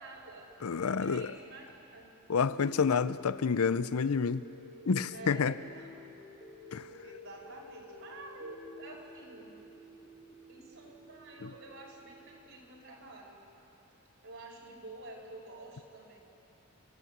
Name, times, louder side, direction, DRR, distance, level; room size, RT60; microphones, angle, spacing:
voice 1, 0.0-0.6 1.0-2.1 5.1-6.3 7.0-9.6 10.5-13.4 14.2-16.2, right 2 dB, 60° right, 4.8 m, -49 dB
voice 2, 0.6-1.3 2.3-4.4 4.9-5.5 6.7-6.9, left 5 dB, 75° left, 0.6 m, -28 dB
sound 1, 2.4-12.4, left 2 dB, 45° left, 3.0 m, -52 dB
29.0 x 15.5 x 8.0 m
head